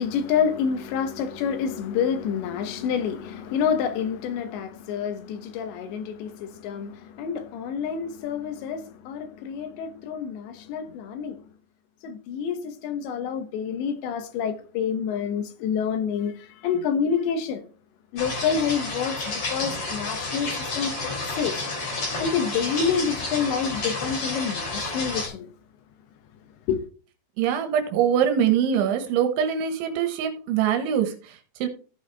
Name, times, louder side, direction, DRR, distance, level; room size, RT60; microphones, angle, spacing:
voice 1, 0.0-11.4 12.0-17.6 18.1-20.9 21.3-21.6 22.2-25.5 26.7-26.8, left 7 dB, 75° left, 3.2 m, -28 dB
sound 1, 18.2-25.3, left 3 dB, 35° left, 3.7 m, -30 dB
voice 2, 27.4-31.7, right 8 dB, 85° right, 3.5 m, -23 dB
15.0 x 5.6 x 3.4 m
omnidirectional pair, 5.3 m